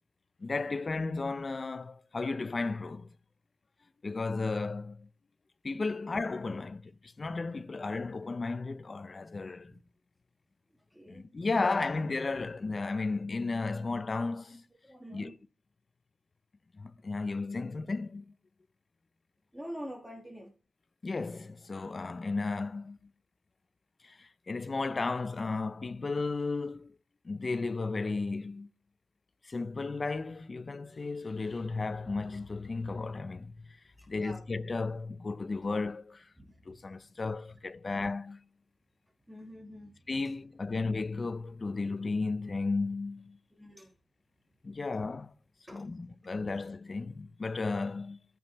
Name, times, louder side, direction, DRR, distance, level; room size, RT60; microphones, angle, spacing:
voice 1, 0.4-3.1 4.0-5.1 5.6-9.8 11.1-14.6 15.1-15.4 16.7-18.2 21.0-23.0 24.0-27.0 27.2-28.7 29.4-33.8 34.1-36.3 36.7-38.4 40.1-43.4 44.6-45.3 45.7-48.2, left 3 dB, 30° left, 0.5 m, -34 dB
voice 2, 10.9-11.3 14.8-15.3 19.5-20.5 33.9-34.5 36.4-37.1 39.3-40.0 43.5-44.0 45.7-46.0, equal, 5° right, 1.5 m, -46 dB
15.0 x 5.2 x 3.0 m
wide cardioid pair, 130°, 0 cm